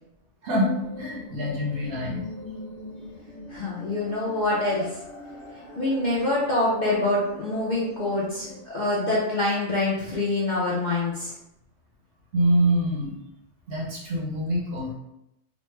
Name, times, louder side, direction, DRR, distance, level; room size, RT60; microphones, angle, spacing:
voice 1, 0.4-2.3 12.3-13.2 13.7-14.9, equal, 60° right, -3 dB, 0.8 m, -25 dB
sound 1, 0.6-8.6, left 1 dB, 25° left, 1.0 m, -42 dB
voice 2, 3.5-5.0 5.8-11.3, left 2 dB, 50° left, -6 dB, 0.6 m, -25 dB
3.1 x 2.0 x 3.1 m, 0.84 s
omnidirectional pair, 1.4 m